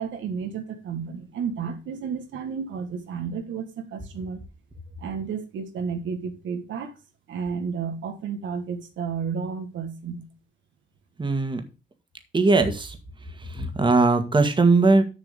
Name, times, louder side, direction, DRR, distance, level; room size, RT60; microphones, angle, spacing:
voice 1, 0.0-4.4 5.0-6.9 7.3-10.3, right 6 dB, 70° right, 1.6 m, -32 dB
voice 2, 11.2-11.6 12.3-13.0 13.5-15.0, right 3 dB, 25° right, 1.9 m, -19 dB
7.0 x 6.0 x 6.8 m
cardioid pair, 90°, 20 cm